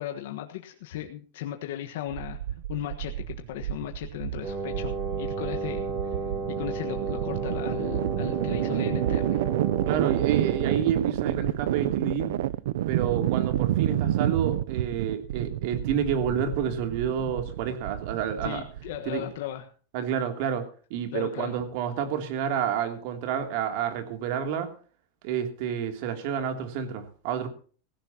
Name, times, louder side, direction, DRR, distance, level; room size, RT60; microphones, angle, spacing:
voice 1, 0.0-2.4 2.7-5.9 6.5-9.4 18.4-19.7 21.1-21.6, left 12 dB, 75° left, 4 dB, 1.4 m, -36 dB
sound 1, 2.1-19.1, right 13 dB, 80° right, 0.5 m, -29 dB
Wind instrument woodwind instrument, 4.4-11.0, right 3 dB, 40° right, 5.6 m, -33 dB
voice 2, 9.8-12.3 12.9-18.6 19.0-19.3 19.9-24.7 25.2-27.5, right 8 dB, 60° right, 6 dB, 2.8 m, -29 dB
16.5 x 16.0 x 2.9 m, 0.40 s
supercardioid pair, 140°, 0 cm